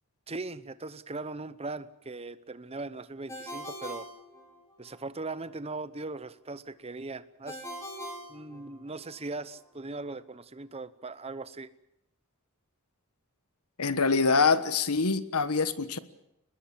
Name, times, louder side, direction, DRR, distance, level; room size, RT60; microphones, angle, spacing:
voice 1, 0.3-4.1 4.8-7.7 8.3-11.7, right 3 dB, 30° right, 14 dB, 0.9 m, -39 dB
Ringtone, 3.3-5.0 7.5-9.1, equal, 15° left, 5.4 m, -42 dB
voice 2, 13.8-16.0, left 4 dB, 85° left, 13 dB, 1.4 m, -25 dB
23.5 x 20.5 x 7.5 m, 0.84 s
head